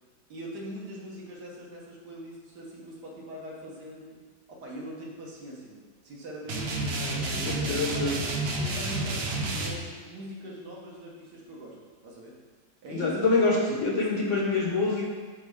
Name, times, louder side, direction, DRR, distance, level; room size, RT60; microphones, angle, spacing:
voice 1, 0.3-4.2 4.5-8.3 8.6-11.8 12.0-12.3 12.8-13.1 13.8-14.4, equal, 75° right, -3 dB, 1.7 m, -42 dB
sound 1, 6.5-9.7, right 2 dB, 60° right, 0.6 m, -30 dB
voice 2, 7.0-8.2 12.9-15.1, left 3 dB, 55° left, -2 dB, 1.0 m, -26 dB
8.1 x 3.6 x 3.5 m, 1.5 s
omnidirectional pair, 1.8 m